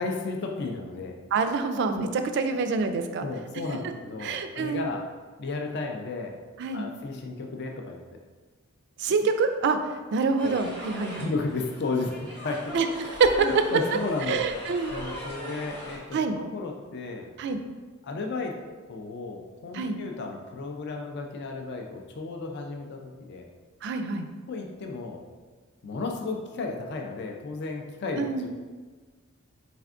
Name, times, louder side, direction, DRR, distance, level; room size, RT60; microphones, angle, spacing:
voice 1, 0.0-1.1 2.5-2.7 3.2-5.1 5.4-6.3 6.7-8.2 10.4-10.5 11.1-12.7 13.4-14.4 14.9-17.3 18.0-18.6 18.9-23.4 24.5-25.2 25.8-28.5, left 3 dB, 55° left, 2 dB, 0.4 m, -33 dB
voice 2, 1.3-3.3 4.2-4.9 6.6-6.9 9.0-9.8 10.1-11.3 12.7-12.9 13.2-13.3 14.3-15.0 16.1-16.4 17.4-17.6 19.7-20.0 23.8-24.3 28.2-28.5, right 4 dB, 55° right, 8 dB, 0.3 m, -26 dB
sound 1, 10.4-16.0, equal, 10° left, 0.9 m, -39 dB
4.2 x 3.4 x 2.4 m, 1.4 s
head